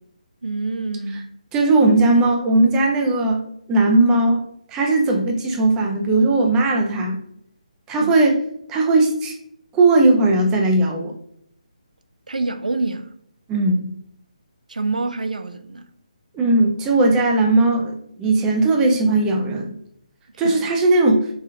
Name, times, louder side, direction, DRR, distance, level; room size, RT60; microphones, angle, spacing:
voice 1, 0.4-1.3 8.0-8.1 12.3-13.1 14.7-15.9 20.3-20.6, right 3 dB, 80° right, 0.5 m, -26 dB
voice 2, 1.5-3.4 3.7-7.2 7.9-8.4 8.7-9.3 9.7-11.1 13.5-13.9 16.3-19.7 20.4-21.2, right 2 dB, 15° right, 0.5 m, -18 dB
5.0 x 2.4 x 2.8 m
figure-of-eight pair, 150°, 4 cm